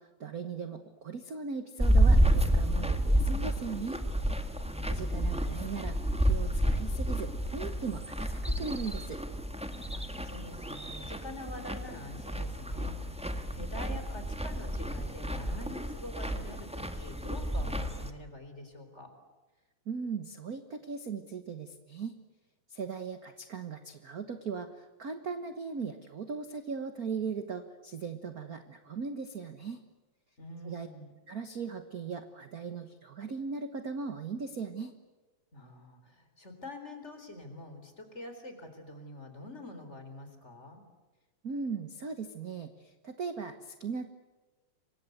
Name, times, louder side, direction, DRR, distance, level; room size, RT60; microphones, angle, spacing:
voice 1, 0.0-4.0 4.9-9.2 19.9-22.2 22.7-29.8 30.6-30.9 31.3-34.9 41.4-44.1, right 5 dB, 50° right, 9 dB, 1.1 m, -38 dB
sound 1, 1.8-18.1, right 1 dB, 5° right, 0.9 m, -30 dB
voice 2, 4.6-5.4 9.9-19.1 30.4-31.2 35.5-40.9, left 1 dB, 20° left, 6 dB, 4.1 m, -46 dB
28.5 x 24.5 x 8.1 m, 1.2 s
omnidirectional pair, 3.5 m